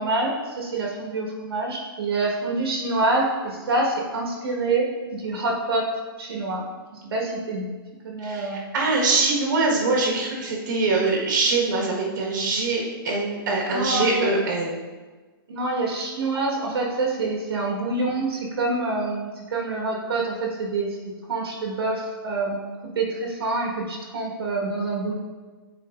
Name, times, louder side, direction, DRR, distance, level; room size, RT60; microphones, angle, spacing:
voice 1, 0.0-5.9 6.2-6.7 7.0-7.6 8.0-8.7 13.7-14.3 15.5-21.0 21.3-22.7 22.9-25.1, right 2 dB, 80° right, -1 dB, 1.5 m, -26 dB
voice 2, 8.2-14.8, right 3 dB, 50° right, -3 dB, 1.6 m, -23 dB
8.9 x 4.5 x 2.6 m, 1.3 s
hypercardioid pair, 160°, 13 cm